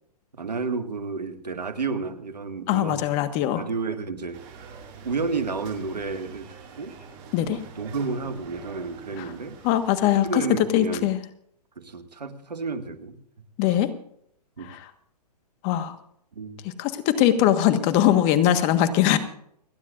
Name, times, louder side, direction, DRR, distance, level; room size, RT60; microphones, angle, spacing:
voice 1, 0.3-3.0 3.6-4.4 5.0-6.9 7.5-9.6 10.2-11.1 11.8-13.2 13.7-13.8 14.6-14.8 16.4-16.6, right 4 dB, 90° right, 8 dB, 1.9 m, -31 dB
voice 2, 2.7-3.6 7.3-7.6 9.2-9.3 9.6-11.2 13.6-13.9 14.6-14.9 15.6-15.9 16.6-19.2, left 11 dB, 35° left, 10 dB, 1.5 m, -21 dB
sound 1, 4.3-10.3, right 5 dB, 35° right, 5.4 m, -45 dB
30.0 x 10.0 x 2.6 m, 0.69 s
hypercardioid pair, 130°, 21 cm